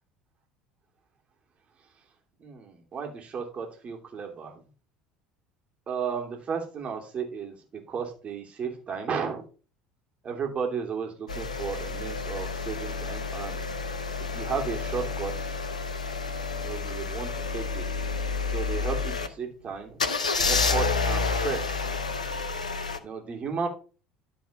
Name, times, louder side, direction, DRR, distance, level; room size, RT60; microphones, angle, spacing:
voice 1, 2.4-4.5 5.9-7.6 7.9-9.4 10.2-13.7 14.3-15.5 16.5-17.9 18.5-20.0 20.5-22.0 23.0-23.7, right 6 dB, 35° right, 2 dB, 2.9 m, -34 dB
sound 1, 11.3-19.3 20.0-23.0, left 4 dB, 85° left, 0.7 m, -29 dB
11.5 x 4.4 x 5.1 m, 0.35 s
figure-of-eight pair, 65°, 4 cm